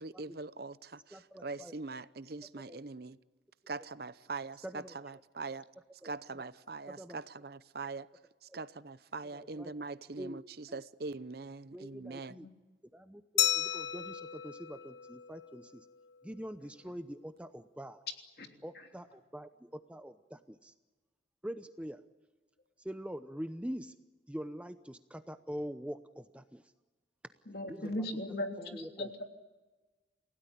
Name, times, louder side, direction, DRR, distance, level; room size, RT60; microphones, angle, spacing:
voice 1, 0.0-3.2 3.7-5.7 6.0-8.1 8.4-12.3, right 3 dB, 55° right, 0.7 m, -42 dB
voice 2, 1.1-1.7 2.4-2.8 4.6-5.2 6.0-6.5 6.9-7.2 8.5-8.6 9.3-9.8 10.2-10.4 10.7-10.8 11.7-12.5 12.9-15.9 16.2-18.0 18.6-20.7 21.4-22.0 22.8-23.9 24.3-26.7 27.7-28.1 28.6-29.2, equal, 5° right, 0.7 m, -44 dB
Glass, 13.4-15.8, left 11 dB, 85° left, 1.2 m, -34 dB
voice 3, 27.5-29.2, left 1 dB, 55° left, 3.2 m, -38 dB
28.5 x 17.0 x 10.0 m
head